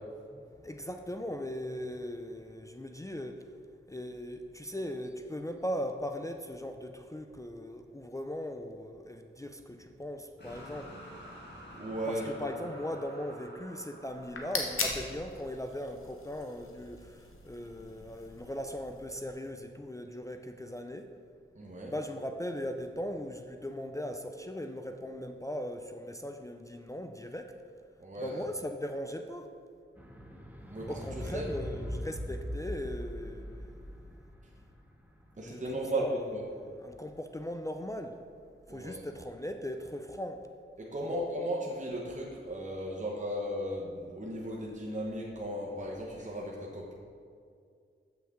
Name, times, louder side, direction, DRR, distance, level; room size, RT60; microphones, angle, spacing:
voice 1, 0.3-3.5 3.9-11.0 12.1-21.1 21.9-27.6 28.2-29.5 30.9-34.2 35.4-38.2 38.7-40.5 41.0-41.2, equal, 15° left, 5 dB, 0.4 m, -39 dB
sound 1, 10.4-16.4, equal, 55° left, 1.7 m, -50 dB
voice 2, 11.8-12.2 21.5-21.9 28.0-28.4 30.7-30.9 31.1-31.5 35.4-36.0 36.3-36.4 38.7-39.0 40.8-46.9, right 1 dB, 35° right, -3 dB, 0.9 m, -36 dB
sound 2, 14.1-19.3, left 3 dB, 75° left, 1.0 m, -40 dB
sound 3, 30.0-36.4 37.2-37.3, equal, 10° right, 0.8 m, -41 dB
7.2 x 6.1 x 3.6 m, 2.3 s
wide cardioid pair, 60°, 21 cm